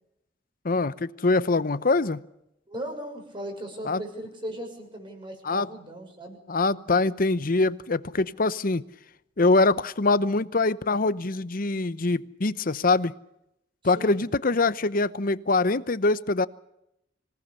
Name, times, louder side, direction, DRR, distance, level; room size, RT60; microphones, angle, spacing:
voice 1, 0.6-2.2 3.9-4.0 5.4-5.7 6.5-8.8 9.4-13.1 13.8-16.5, left 3 dB, 50° left, 15 dB, 0.8 m, -24 dB
voice 2, 2.7-6.4 13.8-14.2, right 1 dB, 25° right, 3 dB, 6.7 m, -38 dB
25.5 x 18.0 x 7.0 m, 0.83 s
head